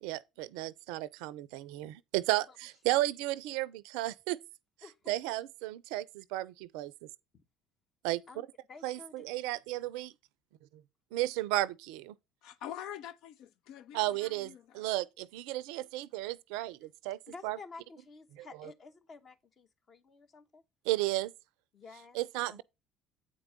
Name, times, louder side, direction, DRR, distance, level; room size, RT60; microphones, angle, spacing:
voice 1, 0.0-4.4 5.1-6.9 8.0-8.2 8.8-10.1 11.1-12.1 13.9-17.2 17.4-17.6 18.4-18.7 20.9-21.3 22.1-22.6, right 17 dB, 70° right, 0.4 m, -33 dB
voice 2, 4.8-5.1 7.3-7.4 8.3-8.4 8.7-9.4 17.3-20.6 21.7-22.2 22.4-22.6, left 4 dB, 45° left, 1.3 m, -51 dB
voice 3, 12.4-14.9, left 10 dB, 65° left, 0.4 m, -45 dB
8.6 x 4.6 x 5.0 m
hypercardioid pair, 60°, 0 cm